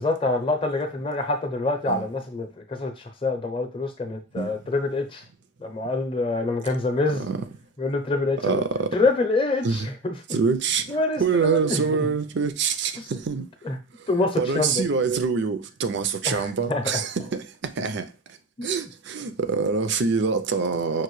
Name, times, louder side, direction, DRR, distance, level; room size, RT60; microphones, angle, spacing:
voice 1, 0.0-2.9 3.2-5.2 5.6-7.2 7.8-8.6 8.9-10.1 10.9-12.1 13.0-13.1 13.6-13.8 14.1-14.8 16.2-17.0 18.6-18.7, left 2 dB, 25° left, 0.6 m, -26 dB
voice 2, 8.4-8.9 9.6-9.9 10.3-13.5 14.0-21.0, right 5 dB, 55° right, 0.4 m, -25 dB
5.9 x 2.6 x 3.1 m
head